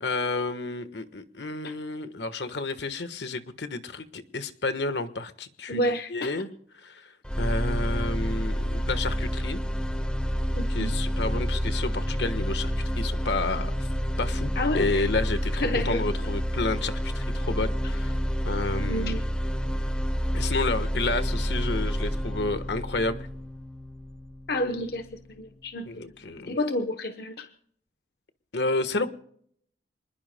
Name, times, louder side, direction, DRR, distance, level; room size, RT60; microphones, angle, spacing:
voice 1, 0.0-6.5 6.7-7.1 7.4-9.6 10.7-13.7 14.2-18.1 18.4-19.1 20.3-23.3 25.9-26.6 28.5-29.1, left 3 dB, 80° left, 10 dB, 1.3 m, -30 dB
voice 2, 5.7-6.3 10.5-10.9 14.6-15.0 15.5-16.0 18.7-19.3 24.5-25.1 25.4-25.9 26.5-27.5, left 1 dB, 60° left, 7 dB, 0.9 m, -29 dB
sound 1, 7.2-25.3, equal, 5° left, 0.9 m, -29 dB
27.0 x 20.5 x 2.2 m, 0.64 s
head